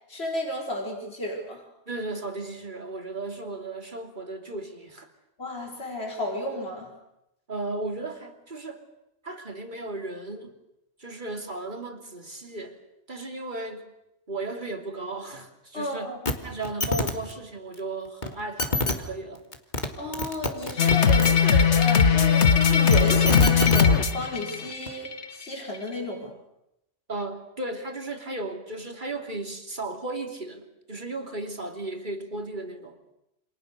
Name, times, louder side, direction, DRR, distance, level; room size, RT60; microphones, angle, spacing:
voice 1, 0.1-1.6 5.4-6.9 15.7-16.3 20.0-26.3, left 1 dB, 60° left, 0 dB, 5.0 m, -32 dB
voice 2, 1.9-5.1 7.5-8.8 9.2-10.6 11.0-12.8 13.1-13.9 14.3-19.4 27.1-33.0, right 2 dB, 40° right, 5 dB, 3.1 m, -35 dB
sound 1, 16.3-16.4 16.6-17.1 18.2-18.3 18.6-18.9 19.5-19.9 20.1-21.3 22.7-23.8 24.9-25.0, left 2 dB, 40° left, 2.4 m, -26 dB
sound 2, 20.8-25.2, left 6 dB, 75° left, 1.7 m, -19 dB
28.5 x 27.0 x 6.7 m, 0.85 s
omnidirectional pair, 1.2 m